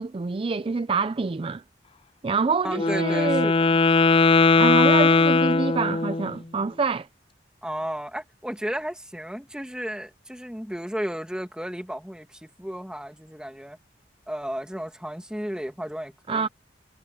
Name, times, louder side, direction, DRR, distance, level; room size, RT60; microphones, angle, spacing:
voice 1, 0.0-1.6 2.2-3.5 4.6-7.1 16.3-16.5, right 4 dB, 30° right, 0.4 m, -26 dB
voice 2, 2.6-3.8 7.6-13.8 14.3-16.5, equal, 5° right, 1.9 m, -33 dB
Wind instrument woodwind instrument, 2.7-6.3, left 3 dB, 30° left, 0.4 m, -19 dB
head